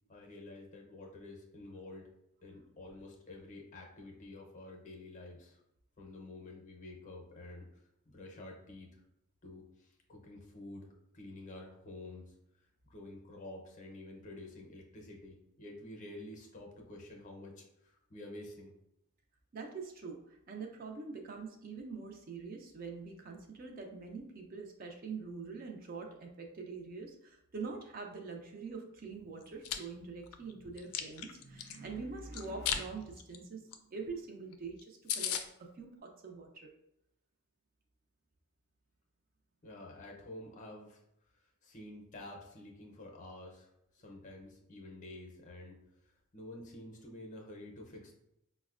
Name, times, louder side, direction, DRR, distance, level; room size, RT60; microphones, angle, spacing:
voice 1, 0.1-2.1 2.4-5.6 6.0-8.9 9.4-12.3 12.9-18.7 39.6-41.0 41.6-45.8 46.3-48.1, left 2 dB, 35° left, 1 dB, 0.6 m, -49 dB
voice 2, 19.5-36.7, right 4 dB, 40° right, 2 dB, 0.4 m, -44 dB
Chewing mastication, 29.4-29.8 30.3-31.8 32.3-32.8 33.2-33.4 33.7-33.8 34.1-34.2 34.5-34.6 34.8-34.9 35.1-35.4, left 9 dB, 85° left, 0.4 m, -35 dB
4.8 x 2.1 x 2.4 m, 0.81 s
head